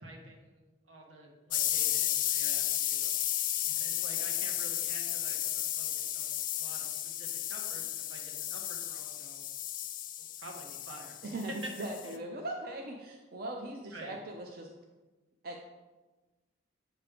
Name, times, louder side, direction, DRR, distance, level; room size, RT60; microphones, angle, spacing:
voice 1, 0.0-3.1 3.7-9.4 10.2-11.1 12.0-12.1 13.9-14.2, right 1 dB, 80° right, 0 dB, 1.3 m, -50 dB
sound 1, 1.5-12.1, left 12 dB, 40° left, 0.3 m, -33 dB
voice 2, 11.2-14.7 15.4-15.6, right 1 dB, 50° right, 1 dB, 0.5 m, -39 dB
7.6 x 3.1 x 4.9 m, 1.2 s
head